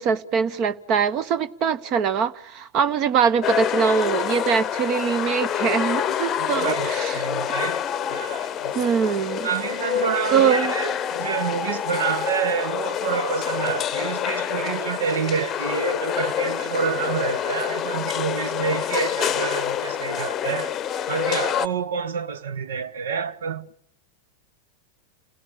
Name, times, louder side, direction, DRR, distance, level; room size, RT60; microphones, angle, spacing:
voice 1, 0.0-7.2 8.7-9.5 10.3-10.7, right 7 dB, 40° right, 1.3 m, -23 dB
sound 1, 3.4-21.7, left 9 dB, 25° left, 0.9 m, -27 dB
voice 2, 6.4-7.8 8.1-8.7 9.4-20.8 21.1-23.7, right 7 dB, 60° right, 1.3 m, -28 dB
29.5 x 17.5 x 8.6 m
figure-of-eight pair, 90°, 0 cm